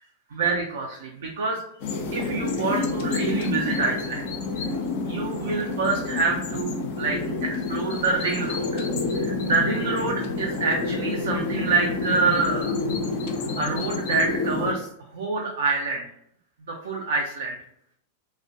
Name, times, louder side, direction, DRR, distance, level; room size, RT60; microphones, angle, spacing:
voice 1, 0.3-1.6 2.1-4.3 4.6-4.7 5.0-8.9 9.1-12.7 13.6-14.9 15.1-16.0 16.7-17.6, right 4 dB, 60° right, 0 dB, 0.3 m, -26 dB
sound 1, 1.8-14.7, left 3 dB, 50° left, 0.4 m, -28 dB
2.4 x 2.1 x 2.5 m, 0.70 s
figure-of-eight pair, 90°, 0 cm